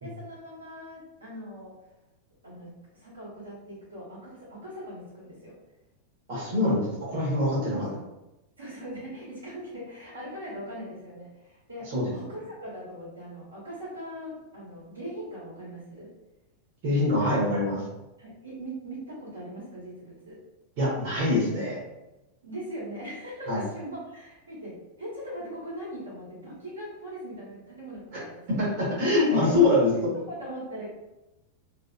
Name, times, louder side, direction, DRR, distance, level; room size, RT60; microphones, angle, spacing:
voice 1, 0.0-1.7 2.4-5.6 6.5-6.8 7.5-8.1 8.6-16.1 18.2-20.4 22.4-28.6 29.3-30.8, equal, 80° right, -8 dB, 1.4 m, -40 dB
voice 2, 6.3-7.8 11.9-12.0 16.8-17.8 20.8-21.8 23.5-23.6 28.1-29.9, left 2 dB, 45° right, -6 dB, 1.2 m, -24 dB
3.3 x 2.8 x 2.4 m, 0.97 s
figure-of-eight pair, 90°, 0 cm